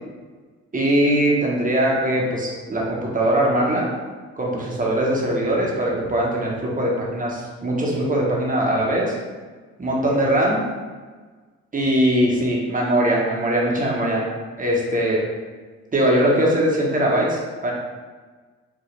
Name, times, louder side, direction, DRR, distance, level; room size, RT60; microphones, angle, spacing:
voice 1, 0.7-3.9 4.4-9.1 9.8-10.6 11.7-14.2 14.6-15.2 15.9-17.7, right 1 dB, 25° right, -3 dB, 1.1 m, -21 dB
5.0 x 2.6 x 3.2 m, 1.4 s
cardioid pair, 90°, 30 cm